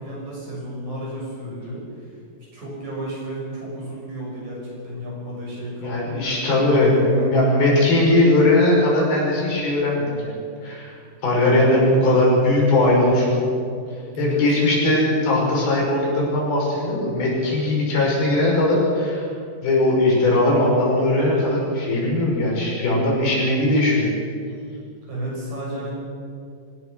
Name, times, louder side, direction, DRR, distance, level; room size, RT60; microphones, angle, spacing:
voice 1, 0.0-2.2 2.5-7.6 14.1-14.4 25.1-25.9, right 1 dB, 50° right, -4 dB, 8.3 m, -32 dB
voice 2, 5.8-10.4 10.6-11.0 11.2-13.4 14.2-19.3 19.6-24.1, left 1 dB, 75° left, -3 dB, 7.3 m, -19 dB
25.5 x 16.5 x 6.4 m, 2.4 s
omnidirectional pair, 4.3 m